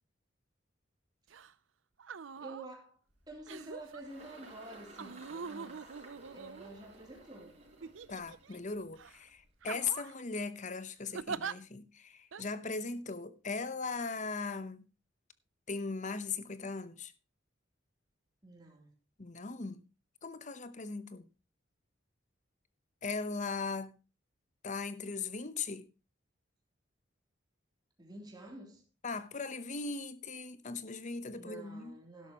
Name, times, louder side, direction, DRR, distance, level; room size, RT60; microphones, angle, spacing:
sound 1, 1.3-1.5 2.0-2.7 3.5-4.0 5.0-7.0 7.8-8.6 9.0-9.2 9.6-10.2 11.1-11.5 12.3-12.4, right 5 dB, 85° right, 0.6 m, -43 dB
voice 1, 2.4-3.0 3.3-5.8 6.2-7.6 18.4-19.0 28.0-28.8 31.3-32.3, right 1 dB, 20° right, 3.3 m, -49 dB
Engine, 3.1-9.7, right 2 dB, 40° right, 5.2 m, -56 dB
voice 2, 8.1-14.9 15.7-17.1 19.2-19.8 20.2-21.3 23.0-23.9 24.6-25.9 29.0-31.9, left 4 dB, 40° left, 0.9 m, -39 dB
12.0 x 11.5 x 3.0 m
head